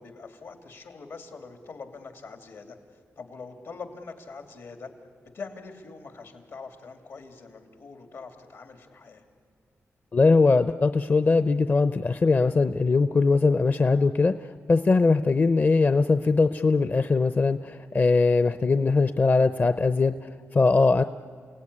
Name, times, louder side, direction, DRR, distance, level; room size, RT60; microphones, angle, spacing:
voice 1, 0.0-2.8 3.2-4.9 5.3-9.2, left 4 dB, 75° left, 6 dB, 2.9 m, -43 dB
voice 2, 10.1-21.0, left 3 dB, 40° left, 11 dB, 0.6 m, -21 dB
30.0 x 17.5 x 9.9 m, 2.1 s
wide cardioid pair, 90°, 5 cm